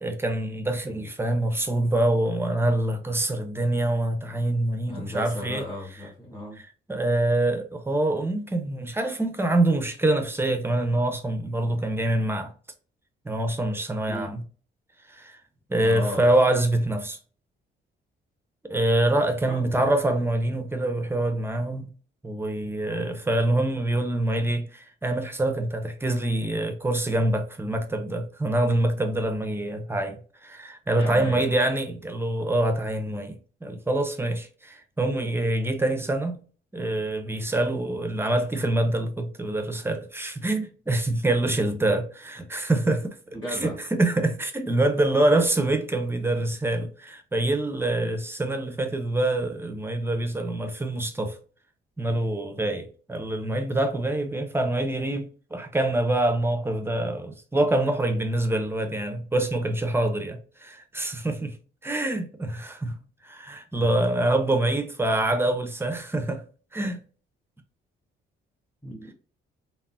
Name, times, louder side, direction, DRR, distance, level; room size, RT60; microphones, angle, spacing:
voice 1, 0.0-5.6 6.6-12.5 13.2-14.4 15.1-15.4 15.7-17.2 18.7-21.9 22.2-36.4 36.7-43.2 43.5-51.4 52.0-61.6 61.8-62.9 63.2-66.4 66.7-67.0, right 1 dB, 10° right, 0.5 m, -25 dB
voice 2, 4.9-6.6 14.1-14.3 15.7-16.3 19.5-19.8 30.9-31.5 43.3-43.8 48.0-48.1 63.7-63.9 68.8-69.1, left 1 dB, 15° left, 1.4 m, -35 dB
3.6 x 2.0 x 2.3 m
cardioid pair, 90°, 20 cm